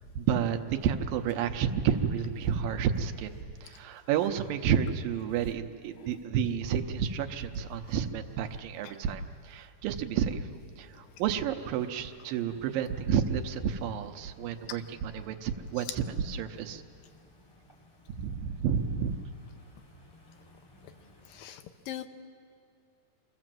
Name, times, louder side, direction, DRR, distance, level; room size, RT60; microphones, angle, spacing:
voice 1, 0.2-3.3 3.6-10.5 10.8-16.8 18.2-19.2, right 8 dB, 85° right, 7 dB, 2.5 m, -30 dB
sound 1, 12.4-21.5, left 2 dB, 10° left, 2.2 m, -57 dB
voice 2, 21.3-22.1, left 12 dB, 80° left, 8 dB, 2.5 m, -42 dB
24.5 x 14.5 x 7.6 m, 2.4 s
omnidirectional pair, 4.1 m